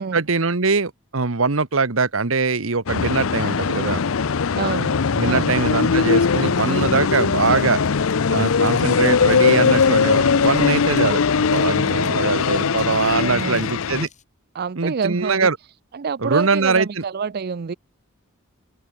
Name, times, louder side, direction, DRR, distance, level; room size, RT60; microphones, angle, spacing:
voice 1, 0.0-4.0 5.1-7.8 8.3-14.1 14.8-15.6 16.2-17.0, right 4 dB, 75° right, 1.3 m, -22 dB
sound 1, 2.9-14.1, left 5 dB, 75° left, 0.6 m, -20 dB
voice 2, 4.5-5.0 5.2-5.6 13.2-13.6 14.5-15.5 15.9-17.7, right 5 dB, 50° right, 0.4 m, -27 dB
sound 2, 6.0-14.2, left 8 dB, 35° left, 3.9 m, -52 dB
head